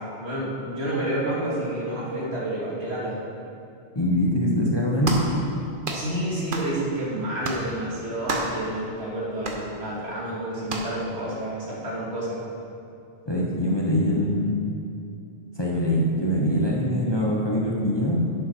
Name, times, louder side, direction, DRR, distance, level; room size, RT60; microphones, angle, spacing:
voice 1, 0.0-3.2 5.9-12.4, right 1 dB, 70° right, -6 dB, 2.4 m, -29 dB
voice 2, 3.9-5.2 13.2-14.6 15.6-18.2, equal, 25° left, -4 dB, 1.1 m, -23 dB
sound 1, 5.0-5.3 5.8-6.1 6.5-6.7 7.4-7.7 8.3-8.6 9.4-9.6 10.7-10.9, right 3 dB, 50° right, 1.1 m, -29 dB
11.0 x 7.0 x 4.6 m, 2.6 s
omnidirectional pair, 1.1 m